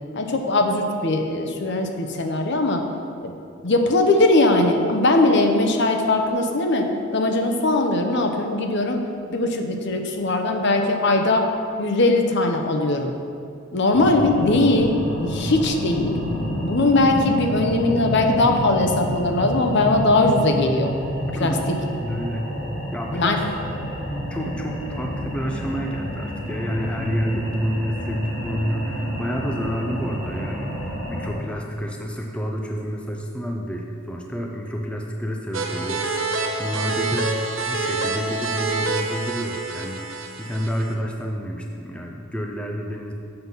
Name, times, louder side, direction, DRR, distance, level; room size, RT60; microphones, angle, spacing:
voice 1, 0.1-2.8 3.2-3.3 3.6-9.0 9.3-11.5 11.8-13.1 13.7-16.2 16.6-20.9 21.4-21.5 23.2-23.4, left 2 dB, 55° left, 4 dB, 0.7 m, -20 dB
sound 1, 13.9-31.3, equal, 75° left, 2.0 m, -29 dB
voice 2, 21.3-21.6 22.0-22.5 22.9-23.4 24.0-37.4 37.7-43.1, equal, 5° left, 1 dB, 0.5 m, -29 dB
sound 2, 35.5-40.9, right 3 dB, 65° right, 0.7 m, -27 dB
7.8 x 5.8 x 5.5 m, 2.5 s
head